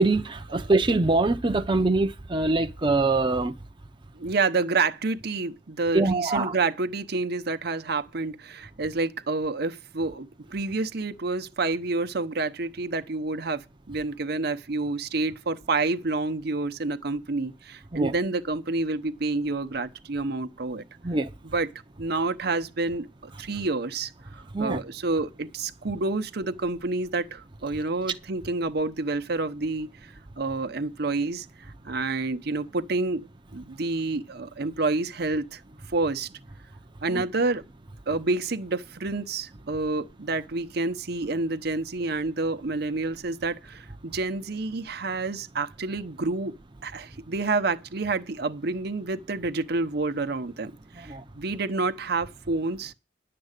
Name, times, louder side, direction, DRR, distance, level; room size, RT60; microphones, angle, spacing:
voice 1, 0.0-3.5 5.9-6.5 17.9-18.1 21.0-21.3 24.5-24.8 37.1-37.2 51.1-51.2, right 2 dB, 25° right, 0.7 m, -23 dB
voice 2, 4.2-20.8 21.4-21.7 22.0-31.5 31.8-33.3 33.5-35.6 35.9-36.3 37.0-37.6 38.1-46.5 46.8-52.9, right 3 dB, 65° right, 0.9 m, -28 dB
11.0 x 7.7 x 6.6 m
head